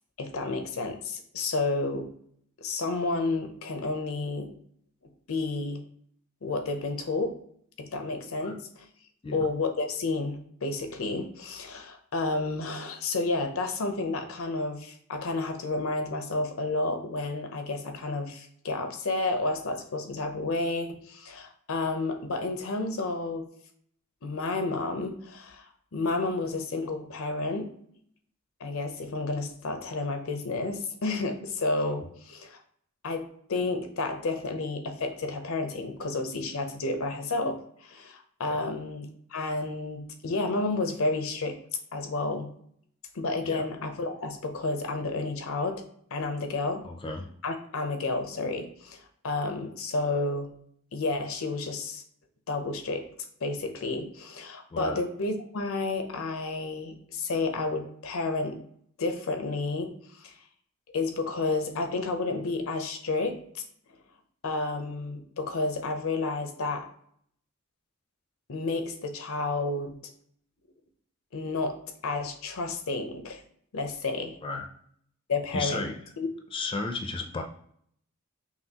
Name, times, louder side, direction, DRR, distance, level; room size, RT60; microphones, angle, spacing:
voice 1, 0.2-2.1 2.6-4.5 5.3-5.8 6.4-7.3 7.8-8.9 9.3-23.5 24.2-27.7 28.6-32.6 33.0-41.6 41.9-42.5 43.1-45.8 46.1-46.9 47.4-50.5 50.9-52.0 52.5-53.0 53.4-58.6 59.0-60.3 60.9-63.6 64.4-66.9 68.5-70.0 71.3-71.8 72.0-73.4 73.7-74.4 75.3-76.3, left 3 dB, 80° left, 6 dB, 0.7 m, -31 dB
voice 2, 46.8-47.3 54.7-55.0 74.4-74.7 75.5-76.0 76.5-77.4, left 3 dB, 25° left, 3 dB, 0.4 m, -34 dB
5.6 x 2.3 x 2.9 m, 0.65 s
head